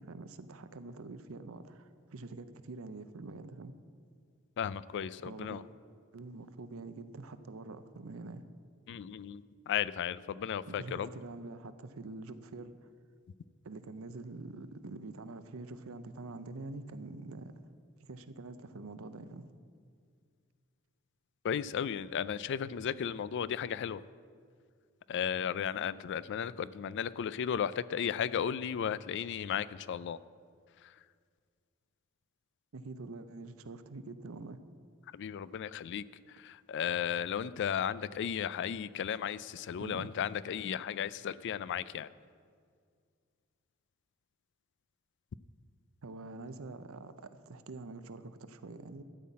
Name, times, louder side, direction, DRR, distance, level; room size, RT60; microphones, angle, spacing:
voice 1, 0.0-3.7 5.2-5.7 6.1-8.4 10.7-12.7 13.6-17.5 18.0-19.4 32.7-34.6 39.8-40.1 46.0-49.0, right 3 dB, 70° right, 11 dB, 0.6 m, -45 dB
voice 2, 4.6-5.6 8.9-11.1 21.4-24.0 25.1-30.2 35.1-36.0 36.4-42.1, left 8 dB, 55° left, 18 dB, 0.3 m, -35 dB
12.5 x 5.7 x 8.4 m, 2.1 s
head